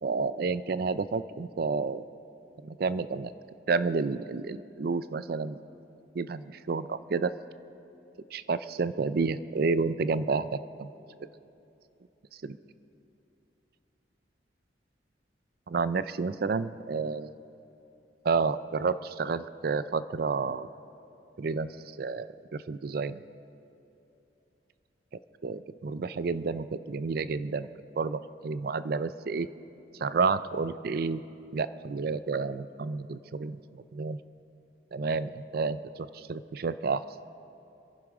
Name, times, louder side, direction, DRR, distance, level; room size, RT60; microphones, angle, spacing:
voice 1, 0.0-2.0 2.6-3.3 3.7-5.6 6.1-7.3 8.3-10.9 12.4-12.6 15.7-17.3 18.2-20.7 21.4-21.7 22.0-23.2 25.4-27.7 28.0-29.5 30.0-31.2 31.5-34.2 34.9-37.0, right 4 dB, 55° right, 14 dB, 0.4 m, -30 dB
26.5 x 11.0 x 4.9 m, 2.8 s
head